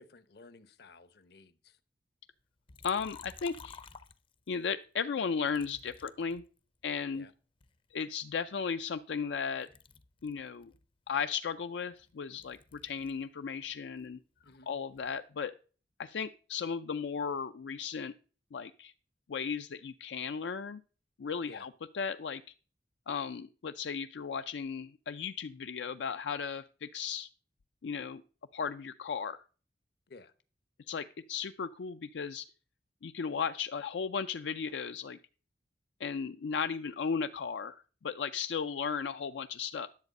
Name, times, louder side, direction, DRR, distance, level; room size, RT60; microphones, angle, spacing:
voice 1, 0.0-1.8 7.1-7.3 14.4-14.7 21.5-21.7 30.1-30.3, left 3 dB, 60° left, 0.8 m, -54 dB
Liquid, 2.7-4.7 5.5-7.0 7.6-9.3 9.6-13.3 13.6-15.2, left 6 dB, 30° left, 0.5 m, -54 dB
voice 2, 2.8-3.8 4.5-6.4 6.8-7.3 7.9-9.7 10.2-10.7 11.1-14.2 14.7-15.5 16.0-18.1 18.5-18.9 19.3-20.8 21.2-22.4 23.1-27.3 27.8-28.2 28.5-29.4 30.9-32.4 33.0-35.2 36.0-39.9, left 6 dB, 80° left, 0.4 m, -35 dB
10.5 x 7.3 x 5.2 m
head